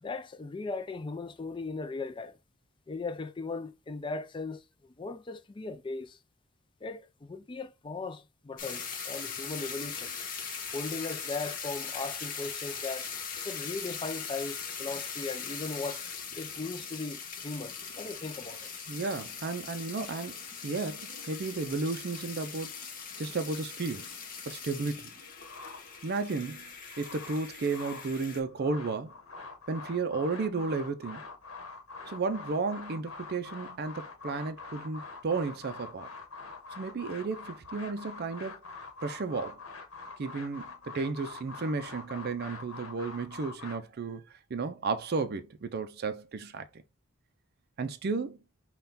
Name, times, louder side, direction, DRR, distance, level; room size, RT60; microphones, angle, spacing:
voice 1, 0.0-2.4 2.9-4.6 5.0-6.2 6.8-10.2 10.7-13.1 13.4-16.0 16.4-18.7, left 3 dB, 25° left, 0.4 m, -38 dB
sound 1, 8.6-28.4, left 6 dB, 40° left, 1.0 m, -40 dB
voice 2, 18.9-22.8 23.2-24.1 24.5-25.1 26.0-26.7 27.0-29.1 29.7-31.2 32.1-36.1 36.7-38.6 39.0-39.6 40.2-44.2 44.5-46.7 47.8-48.4, right 4 dB, 45° right, 0.4 m, -33 dB
sound 2, 25.4-26.3 26.7-28.1 28.5-43.8, left 4 dB, 65° left, 1.1 m, -45 dB
5.6 x 2.3 x 4.0 m
head